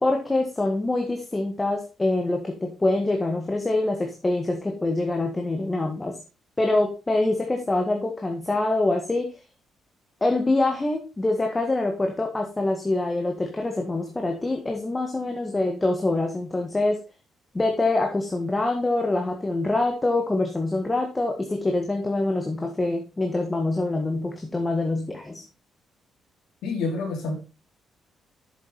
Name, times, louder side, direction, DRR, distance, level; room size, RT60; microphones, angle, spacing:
voice 1, 0.0-6.2 6.6-9.3 10.2-17.0 17.5-25.4, left 2 dB, 20° left, 1.7 m, -25 dB
voice 2, 26.6-27.3, left 3 dB, 85° left, 3.6 m, -27 dB
7.9 x 7.3 x 4.2 m
cardioid pair, 90°, 0 cm